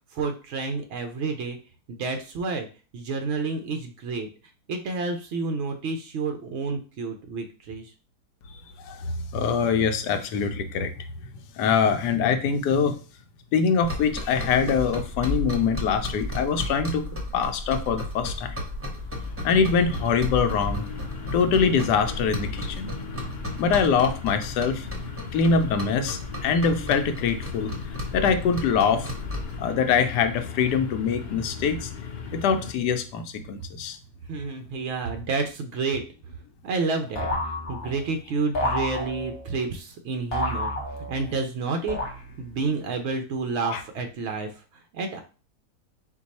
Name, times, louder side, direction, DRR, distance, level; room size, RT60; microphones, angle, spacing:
voice 1, 0.1-1.6 1.9-2.7 2.9-4.3 4.7-7.9 34.3-36.0 36.6-40.7 41.1-42.0 42.4-44.6 44.9-45.2, right 4 dB, 75° right, 5 dB, 0.6 m, -29 dB
voice 2, 9.3-10.9 11.6-12.9 13.5-17.0 17.3-18.6 19.4-20.9 21.3-22.9 23.6-24.9 25.3-27.7 28.1-29.1 29.6-31.9 32.3-34.0 43.6-43.8, left 6 dB, 80° left, 8 dB, 1.2 m, -23 dB
sound 1, 13.8-29.6, left 1 dB, 15° right, 0.5 m, -34 dB
sound 2, 18.7-32.7, left 5 dB, 60° left, 0.6 m, -38 dB
sound 3, 37.2-38.1 38.5-39.5 40.3-41.3 41.9-42.6, left 1 dB, 40° left, 1.1 m, -30 dB
4.5 x 2.3 x 4.1 m, 0.36 s
omnidirectional pair, 1.8 m